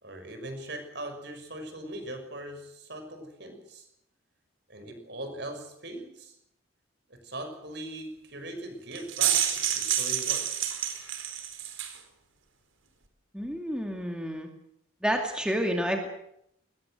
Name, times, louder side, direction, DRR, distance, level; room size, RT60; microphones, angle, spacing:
voice 1, 0.0-3.9 4.7-6.4 7.1-10.7, right 1 dB, 55° right, 7 dB, 6.1 m, -40 dB
sound 1, 8.9-12.0, right 10 dB, 70° right, 4.4 m, -28 dB
voice 2, 13.3-14.5 15.0-16.1, equal, 5° right, 3 dB, 2.4 m, -29 dB
22.5 x 21.0 x 7.9 m, 0.76 s
head